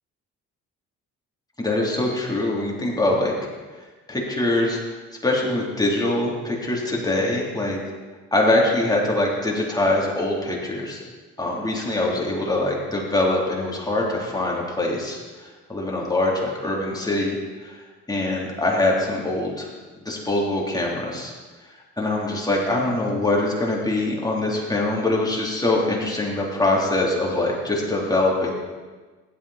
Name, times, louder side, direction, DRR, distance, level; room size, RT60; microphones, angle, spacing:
voice 1, 1.6-3.3 4.1-4.8 5.2-7.8 8.3-11.0 11.4-17.8 18.1-19.7 20.0-21.3 22.0-28.5, left 2 dB, 15° left, -3 dB, 3.6 m, -23 dB
15.5 x 12.0 x 4.4 m, 1.3 s
cardioid pair, 90°, 30 cm